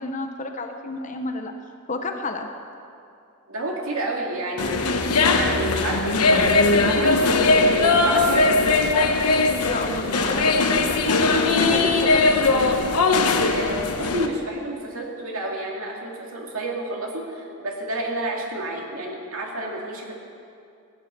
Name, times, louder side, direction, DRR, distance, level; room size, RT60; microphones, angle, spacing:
voice 1, 0.0-1.5 1.9-2.5 9.6-11.3 11.6-12.6, left 2 dB, 35° left, 5 dB, 0.8 m, -31 dB
voice 2, 3.5-4.9 5.3-8.5 13.4-20.1, right 1 dB, 65° right, 0 dB, 2.3 m, -30 dB
sound 1, 4.6-14.3, left 3 dB, 90° left, 1.0 m, -20 dB
16.0 x 9.3 x 6.8 m, 2.4 s
head